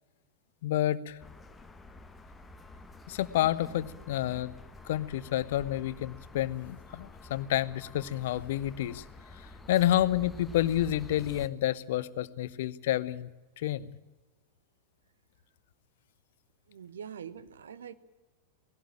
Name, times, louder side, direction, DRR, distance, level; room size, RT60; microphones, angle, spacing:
voice 1, 0.6-1.2 3.1-4.5 4.8-9.0 9.3-13.3 13.6-13.9, left 13 dB, 55° left, 17 dB, 0.8 m, -29 dB
sound 1, 1.2-11.5, left 2 dB, 10° left, 1.2 m, -49 dB
voice 2, 16.7-17.9, right 8 dB, 65° right, 14 dB, 1.0 m, -44 dB
19.0 x 16.5 x 8.9 m, 1.1 s
figure-of-eight pair, 90°, 0 cm